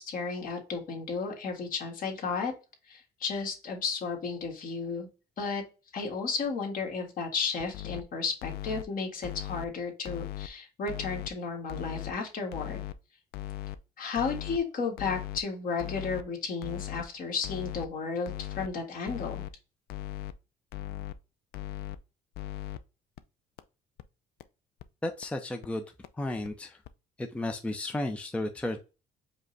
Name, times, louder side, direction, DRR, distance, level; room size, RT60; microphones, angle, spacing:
voice 1, 0.0-2.5 2.9-5.1 5.4-5.6 5.9-12.8 14.0-19.4, left 5 dB, 55° left, 1 dB, 1.7 m, -33 dB
sound 1, 7.6-8.0 8.4-8.8 9.2-9.6 10.0-10.5 10.9-11.3 11.7-12.1 12.5-12.9 13.3-13.8 14.2-14.6 15.0-15.4 15.8-16.2 16.6-17.0 17.4-17.9 18.3-18.7 19.1-19.5 19.9-20.3 20.7-21.1 21.5-22.0 22.3-22.8 23.2-23.3 23.6-23.7 24.0-24.1 24.4-24.5 24.8-24.9 25.2-25.3 25.6-25.7 26.0-26.1 26.4-26.5 26.8-26.9, left 14 dB, 70° left, 0.4 m, -38 dB
voice 2, 25.0-25.8 26.2-26.8 27.2-28.8, left 1 dB, 5° left, 4 dB, 0.5 m, -33 dB
5.1 x 2.1 x 3.9 m, 0.31 s
cardioid pair, 110°, 17 cm